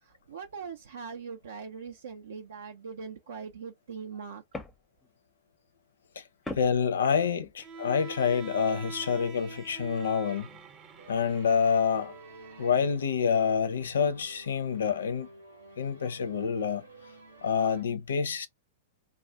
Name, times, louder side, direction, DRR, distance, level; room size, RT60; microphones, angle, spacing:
voice 1, 0.0-4.4, right 5 dB, 70° right, 0.4 m, -41 dB
sound 1, 3.2-3.3 4.0-5.2 6.4-7.7, left 2 dB, 10° left, 0.5 m, -42 dB
voice 2, 6.6-10.5 11.1-12.1 12.6-15.3 15.8-16.8 17.4-18.5, left 6 dB, 70° left, 0.5 m, -27 dB
Bowed string instrument, 7.6-12.8, right 5 dB, 30° right, 0.6 m, -45 dB
sound 2, 11.0-17.8, right 2 dB, 85° right, 0.8 m, -52 dB
2.3 x 2.0 x 2.7 m
figure-of-eight pair, 105°, 0 cm